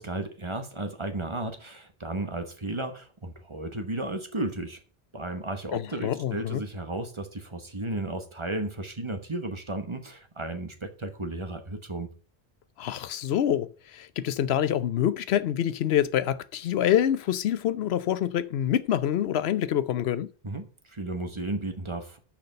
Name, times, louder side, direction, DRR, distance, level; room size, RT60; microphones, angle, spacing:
voice 1, 0.0-4.8 5.1-12.1 20.4-22.2, right 2 dB, 30° right, 1.1 m, -34 dB
voice 2, 5.7-6.6 12.8-20.3, left 10 dB, 90° left, 0.9 m, -26 dB
6.6 x 5.9 x 6.6 m
omnidirectional pair, 1.0 m